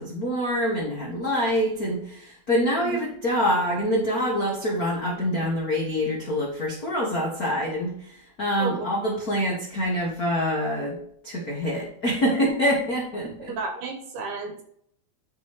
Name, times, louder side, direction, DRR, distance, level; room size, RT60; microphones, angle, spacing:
voice 1, 0.0-11.0 11.2-13.6, equal, 60° left, -3 dB, 0.9 m, -26 dB
voice 2, 13.6-14.6, right 4 dB, 70° right, 5 dB, 2.2 m, -32 dB
9.8 x 5.7 x 3.0 m, 0.68 s
omnidirectional pair, 4.3 m